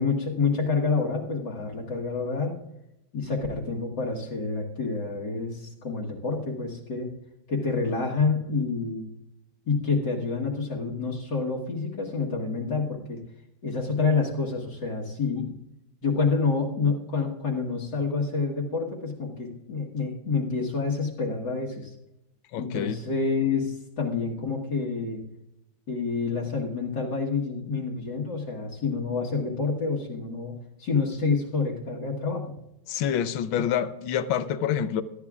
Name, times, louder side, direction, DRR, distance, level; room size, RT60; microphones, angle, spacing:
voice 1, 0.0-2.6 3.1-7.1 7.5-9.0 9.7-13.2 13.6-15.5 16.0-21.9 22.6-25.2 25.9-30.5 30.8-32.5 33.6-33.7, left 4 dB, 65° left, -4 dB, 2.1 m, -28 dB
voice 2, 22.5-23.0 32.9-35.0, left 9 dB, 85° left, 13 dB, 1.5 m, -27 dB
19.0 x 13.0 x 2.4 m, 0.85 s
omnidirectional pair, 2.1 m